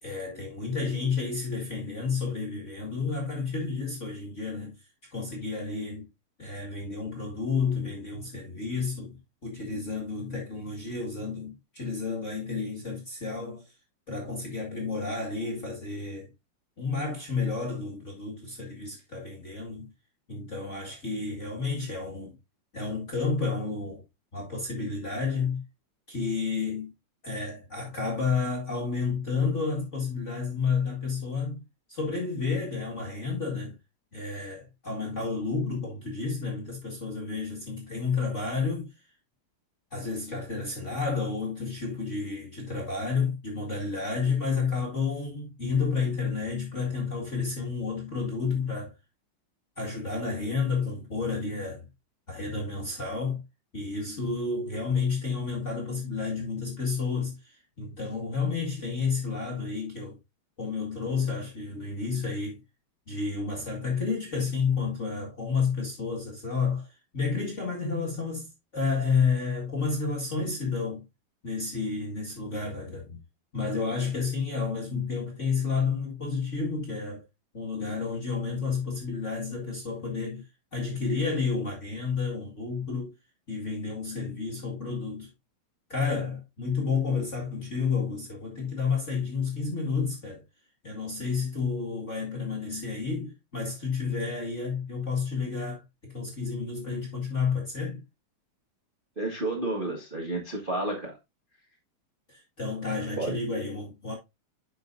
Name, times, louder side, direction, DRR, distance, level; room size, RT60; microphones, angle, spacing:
voice 1, 0.0-4.8 5.1-6.1 6.4-13.7 14.1-16.3 16.8-19.9 20.3-22.4 22.7-24.0 24.3-25.6 26.1-26.9 27.2-31.6 31.9-33.8 34.1-38.9 39.9-48.9 49.8-51.9 52.3-53.4 53.7-60.2 60.6-62.6 63.1-66.9 67.1-71.1 71.4-73.2 73.5-77.2 77.5-80.4 80.7-83.1 83.5-85.3 85.9-90.4 90.8-98.0 102.3-104.1, left 4 dB, 30° left, 1.3 m, -31 dB
voice 2, 99.2-101.1 103.2-103.3, right 2 dB, 45° right, 0.6 m, -31 dB
10.0 x 5.8 x 2.6 m
omnidirectional pair, 4.2 m